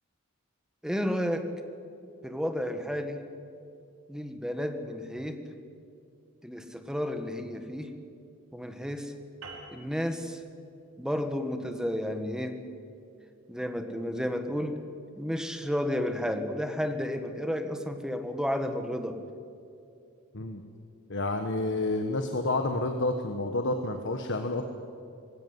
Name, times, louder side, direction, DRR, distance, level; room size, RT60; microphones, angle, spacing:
voice 1, 0.8-1.5 2.2-3.2 4.1-5.4 6.4-7.9 8.5-9.1 9.7-10.4 11.0-12.6 13.5-14.8 15.2-19.2, equal, 5° right, 7 dB, 1.6 m, -32 dB
sound 1, 9.4-14.2, right 3 dB, 85° right, 5.2 m, -51 dB
voice 2, 21.1-24.6, left 2 dB, 60° left, 5 dB, 1.4 m, -29 dB
20.5 x 17.0 x 9.8 m, 2.5 s
head